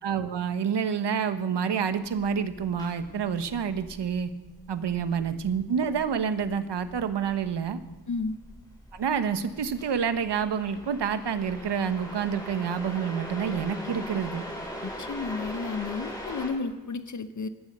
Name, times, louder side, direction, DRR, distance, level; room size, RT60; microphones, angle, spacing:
voice 1, 0.0-4.3 4.7-7.8 8.9-14.4, right 7 dB, 75° right, 11 dB, 1.1 m, -28 dB
sound 1, 2.0-16.5, equal, 10° left, 6.4 m, -41 dB
voice 2, 8.1-8.4 14.8-17.5, left 4 dB, 45° left, 12 dB, 0.7 m, -32 dB
15.0 x 12.0 x 6.6 m, 1.2 s
wide cardioid pair, 135°, 42 cm